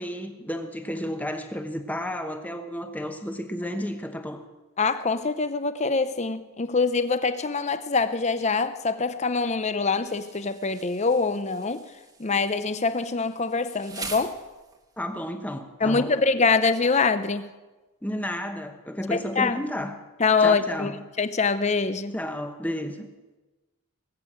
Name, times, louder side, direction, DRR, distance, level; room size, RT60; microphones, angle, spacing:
voice 1, 0.0-4.4 15.0-16.2 18.0-20.0 20.4-21.0 22.1-23.1, equal, 5° left, 6 dB, 1.0 m, -32 dB
voice 2, 4.8-11.8 12.2-14.4 15.8-17.5 19.1-19.6 20.2-20.9 21.2-22.1, left 4 dB, 30° left, 12 dB, 0.6 m, -24 dB
Insect, 10.1-15.0, right 4 dB, 15° right, 1.2 m, -43 dB
20.5 x 8.3 x 7.4 m, 1.2 s
head